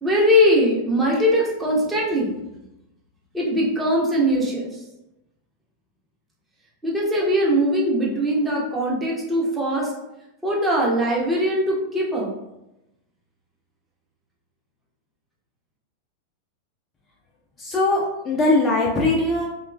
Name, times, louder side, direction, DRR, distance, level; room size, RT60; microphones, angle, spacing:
voice 1, 0.0-2.3 3.3-4.7 6.8-9.9 10.4-12.3, equal, 10° right, -4 dB, 0.7 m, -21 dB
voice 2, 17.6-19.5, left 2 dB, 20° left, -2 dB, 0.3 m, -20 dB
2.8 x 2.2 x 2.3 m, 0.92 s
figure-of-eight pair, 90°, 0 cm